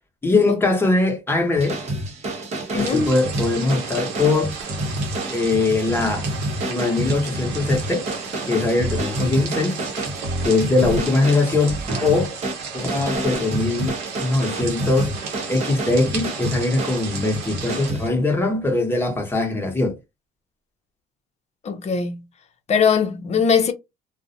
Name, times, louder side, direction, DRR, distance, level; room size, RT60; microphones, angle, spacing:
voice 1, 0.2-1.8 2.7-4.5 5.3-6.3 6.6-8.1 8.5-9.8 10.4-12.3 12.7-15.1 15.5-20.0, left 3 dB, 15° left, 0.9 m, -21 dB
sound 1, 1.5-18.1, right 1 dB, 40° right, 0.8 m, -29 dB
voice 2, 2.7-3.1 21.6-22.2 22.7-23.7, left 6 dB, 40° left, 0.6 m, -20 dB
sound 2, 2.8-17.9, right 6 dB, 90° right, 0.8 m, -34 dB
2.4 x 2.0 x 2.5 m
cardioid pair, 110°, 17 cm